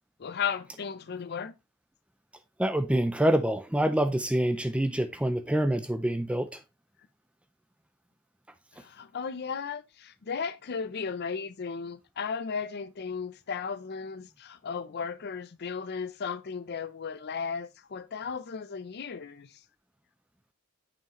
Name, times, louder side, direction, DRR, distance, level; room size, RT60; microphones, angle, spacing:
voice 1, 0.2-1.5 8.8-19.5, left 6 dB, 50° left, 0.5 m, -35 dB
voice 2, 2.6-6.5, right 1 dB, 5° right, 0.4 m, -26 dB
7.1 x 5.7 x 3.0 m
head